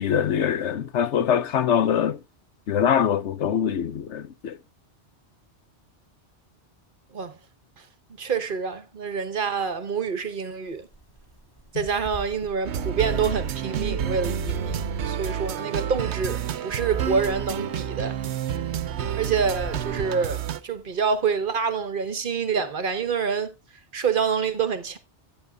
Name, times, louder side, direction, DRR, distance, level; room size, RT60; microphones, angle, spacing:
voice 1, 0.0-2.2 2.7-4.6, left 8 dB, 85° left, 1.1 m, -23 dB
voice 2, 8.2-10.9 11.7-18.2 19.2-23.5 23.9-25.0, right 6 dB, 50° right, 1.1 m, -27 dB
sound 1, 10.7-21.2, right 2 dB, 20° left, 3.0 m, -42 dB
sound 2, 12.6-20.6, right 8 dB, 75° right, 1.0 m, -29 dB
13.5 x 9.0 x 2.3 m
omnidirectional pair, 1.2 m